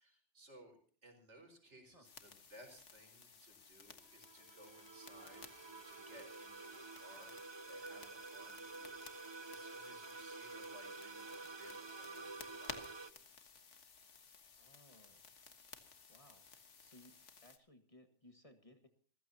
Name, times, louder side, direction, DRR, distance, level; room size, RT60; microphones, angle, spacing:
voice 1, 0.0-13.4, right 1 dB, 75° right, 4 dB, 5.1 m, -61 dB
sound 1, 2.0-17.6, left 5 dB, 80° left, 1.8 m, -57 dB
sound 2, 4.0-13.1, right 3 dB, 25° right, 0.7 m, -50 dB
voice 2, 14.5-15.3 16.1-16.5 16.8-18.9, left 1 dB, 30° left, 7 dB, 1.8 m, -63 dB
27.0 x 15.0 x 2.8 m, 0.43 s
omnidirectional pair, 1.2 m